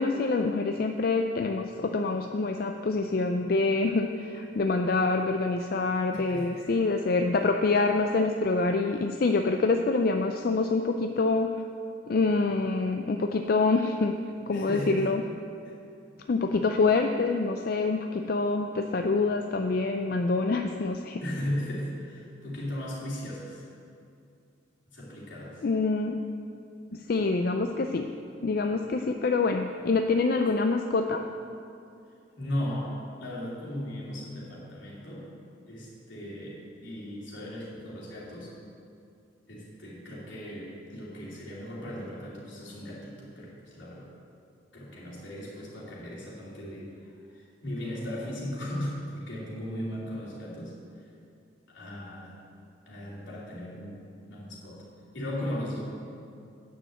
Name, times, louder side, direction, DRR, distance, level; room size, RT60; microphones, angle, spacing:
voice 1, 0.0-11.5 12.1-14.2 14.5-15.2 16.3-21.2 25.6-26.2 26.9-28.1 28.4-31.2, left 3 dB, 50° left, 5 dB, 0.4 m, -26 dB
voice 2, 6.1-6.7 14.5-15.1 15.6-15.7 21.2-23.7 24.9-25.6 32.4-35.3 35.7-38.5 39.5-44.1 44.7-51.1 51.7-52.4 52.9-54.0 54.3-54.9 55.1-55.8, left 1 dB, 80° left, -6 dB, 2.9 m, -37 dB
9.3 x 6.3 x 7.8 m, 2.5 s
head